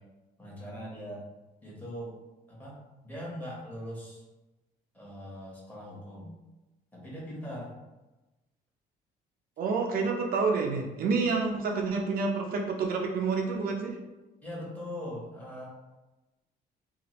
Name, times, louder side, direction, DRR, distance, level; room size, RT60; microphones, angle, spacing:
voice 1, 0.4-1.2 1.6-2.1 2.5-4.2 4.9-6.3 6.9-7.8 14.4-15.7, equal, 10° left, -5 dB, 1.1 m, -41 dB
voice 2, 9.6-14.0, right 4 dB, 60° right, 0 dB, 0.5 m, -28 dB
2.9 x 2.2 x 3.0 m, 1.1 s
cardioid pair, 110°, 17 cm